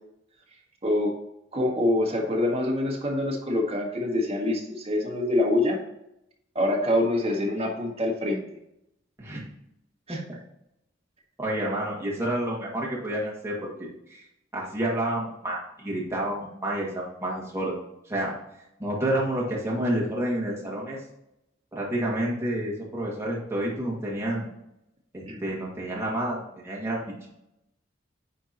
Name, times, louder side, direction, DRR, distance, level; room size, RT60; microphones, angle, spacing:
voice 1, 0.8-1.1 1.5-5.8 6.5-8.4 10.1-10.2 25.3-25.4, left 1 dB, 30° right, -1 dB, 1.5 m, -25 dB
voice 2, 11.4-14.2 14.5-17.7 18.1-18.3 18.8-21.0 21.7-24.5 25.1-27.3, right 1 dB, 15° right, -5 dB, 2.0 m, -29 dB
9.4 x 4.5 x 2.9 m, 0.82 s
head